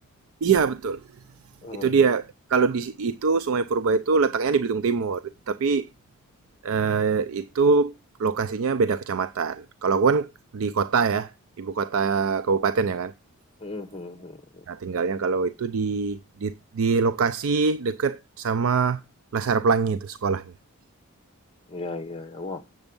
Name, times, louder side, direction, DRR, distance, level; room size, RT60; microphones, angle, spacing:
voice 1, 0.4-1.0 1.8-5.9 6.6-7.9 8.2-11.3 11.6-13.1 14.7-19.0 19.3-20.4, right 5 dB, 70° right, 0.4 m, -24 dB
voice 2, 1.6-2.1 13.6-14.6 21.7-22.6, left 2 dB, 25° left, 0.8 m, -36 dB
7.8 x 7.1 x 5.2 m
head